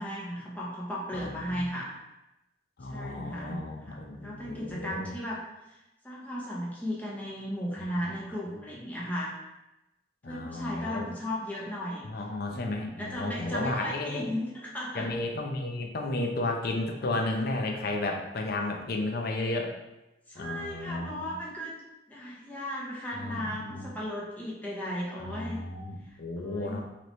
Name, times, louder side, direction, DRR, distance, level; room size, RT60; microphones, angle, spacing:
voice 1, 0.0-1.9 2.9-5.8 6.0-9.4 10.2-12.0 12.5-15.1 20.3-21.7 22.1-25.6 26.4-26.8, equal, 10° left, -5 dB, 0.7 m, -36 dB
voice 2, 1.1-1.6 2.8-5.1 7.9-8.0 10.2-11.1 12.0-14.3 14.9-19.7 20.4-21.3 23.1-23.9 25.2-26.8, left 2 dB, 55° left, 2 dB, 0.6 m, -33 dB
3.8 x 3.0 x 3.1 m, 0.96 s
head